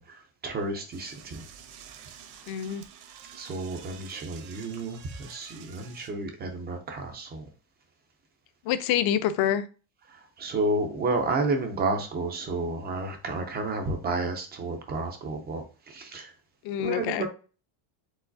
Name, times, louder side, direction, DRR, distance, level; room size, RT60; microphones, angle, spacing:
voice 1, 0.0-1.5 3.3-7.5 10.1-16.3 16.8-17.3, right 2 dB, 25° right, 4 dB, 0.3 m, -31 dB
Door / Toilet flush, 0.9-6.1, right 8 dB, 50° right, 0.8 m, -49 dB
voice 2, 2.5-2.8 8.6-9.6 16.6-17.3, left 10 dB, 50° left, 12 dB, 0.5 m, -26 dB
4.7 x 3.7 x 2.5 m, 0.35 s
cardioid pair, 165°, 50 cm